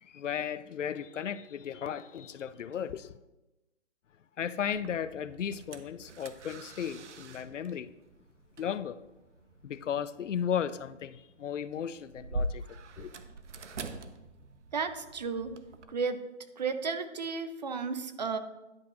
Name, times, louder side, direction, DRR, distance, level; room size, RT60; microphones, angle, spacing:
voice 1, 0.0-3.1 4.4-7.9 8.6-9.0 9.6-13.1, left 8 dB, 85° left, 0.6 m, -35 dB
sound 1, 4.7-15.8, right 1 dB, 75° right, 0.9 m, -44 dB
voice 2, 14.7-15.5 15.9-16.2 16.6-18.4, right 5 dB, 35° right, 0.5 m, -33 dB
10.5 x 9.5 x 2.4 m
hypercardioid pair, 155°, 36 cm